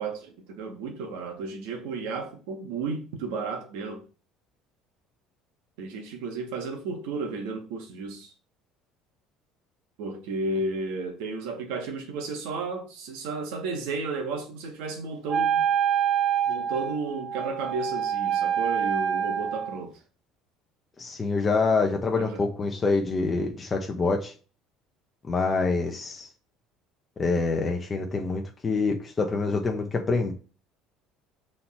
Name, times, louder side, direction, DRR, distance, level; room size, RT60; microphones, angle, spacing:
voice 1, 0.0-4.0 5.8-8.3 10.0-15.6 16.5-20.0 22.2-22.4, right 3 dB, 85° right, 1.9 m, -33 dB
Wind instrument woodwind instrument, 15.3-19.8, right 8 dB, 45° right, 0.8 m, -26 dB
voice 2, 21.0-24.3 25.3-26.3 27.2-30.3, left 4 dB, 20° left, 0.9 m, -26 dB
6.2 x 4.3 x 4.4 m
cardioid pair, 145°, 0 cm